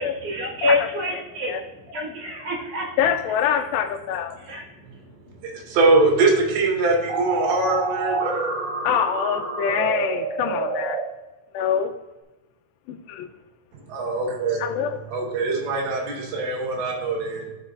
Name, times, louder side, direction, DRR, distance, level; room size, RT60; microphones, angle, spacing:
voice 1, 0.0-3.1 4.4-5.8, left 2 dB, 40° right, -5 dB, 3.1 m, -28 dB
voice 2, 3.0-4.4 8.8-11.0 11.5-11.9 12.9-13.3 14.6-15.0, left 8 dB, 85° left, 7 dB, 2.8 m, -25 dB
voice 3, 5.4-8.4 13.9-14.6 15.1-17.5, right 3 dB, 85° right, -2 dB, 4.2 m, -22 dB
sound 1, 7.1-11.0, right 3 dB, 60° right, 3.6 m, -27 dB
13.5 x 6.0 x 2.6 m, 1.1 s
omnidirectional pair, 4.9 m